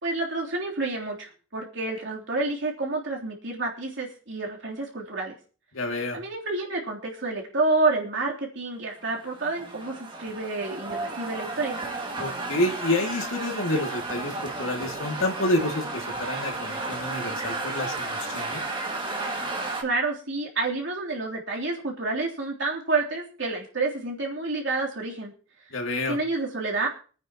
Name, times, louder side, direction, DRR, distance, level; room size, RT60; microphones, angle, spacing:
voice 1, 0.0-5.3 6.1-11.8 19.8-25.3 26.1-26.9, right 3 dB, 65° right, -2 dB, 3.3 m, -29 dB
voice 2, 5.7-6.2 12.2-18.6 25.7-26.2, left 1 dB, 85° left, 3 dB, 2.4 m, -28 dB
sound 1, 9.1-19.8, right 2 dB, 25° right, 2.1 m, -33 dB
25.0 x 9.5 x 3.0 m, 0.38 s
head